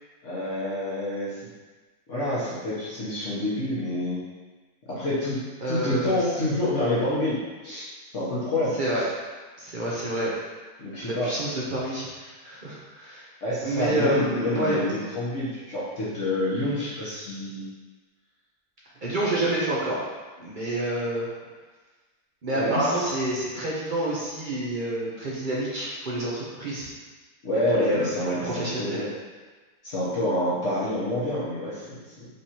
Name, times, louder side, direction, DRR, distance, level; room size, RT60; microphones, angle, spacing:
voice 1, 0.2-1.4 2.1-4.2 4.9-5.4 5.7-7.9 8.1-8.8 10.8-11.3 13.4-17.7 19.3-19.5 22.5-22.9 27.4-29.1 29.8-32.3, left 1 dB, 55° left, -10 dB, 1.3 m, -27 dB
voice 2, 5.6-6.2 8.8-9.0 9.6-10.3 11.0-13.3 13.6-14.8 19.0-20.0 20.4-21.3 22.4-26.9 27.7-29.0, right 1 dB, 45° right, -6 dB, 0.7 m, -28 dB
5.1 x 3.3 x 2.8 m, 1.3 s
omnidirectional pair, 1.6 m